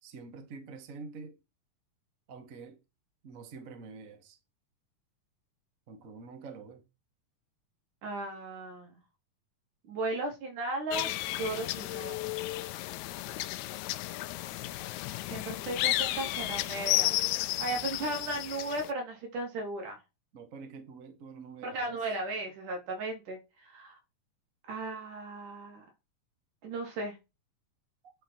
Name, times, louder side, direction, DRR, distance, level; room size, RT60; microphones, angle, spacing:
voice 1, 0.0-1.4 2.3-2.8 3.2-4.4 5.9-6.8 20.3-22.0, right 4 dB, 40° right, 1.2 m, -46 dB
voice 2, 8.0-8.9 9.9-12.4 15.1-17.2 17.4-20.0 21.6-23.9 24.7-25.9 26.6-27.2, right 2 dB, 80° right, 4.6 m, -36 dB
sound 1, 10.9-18.9, left 16 dB, 80° left, 1.8 m, -33 dB
10.5 x 4.5 x 4.7 m
omnidirectional pair, 3.5 m